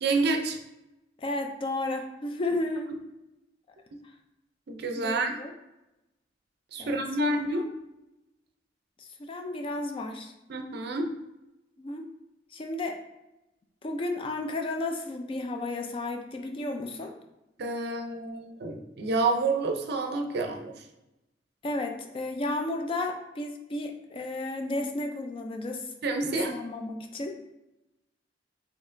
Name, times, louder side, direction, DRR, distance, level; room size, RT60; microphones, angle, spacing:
voice 1, 0.0-0.6 4.7-5.3 6.7-7.6 10.5-11.1 17.6-20.7 26.0-26.5, right 3 dB, 55° right, 3 dB, 0.5 m, -28 dB
voice 2, 1.2-2.9 4.9-5.5 6.8-7.7 9.0-10.3 11.8-12.1 12.5-13.0 13.8-17.1 21.6-25.9 26.3-27.4, left 2 dB, 30° left, 4 dB, 0.3 m, -33 dB
4.2 x 2.9 x 2.5 m, 0.94 s
head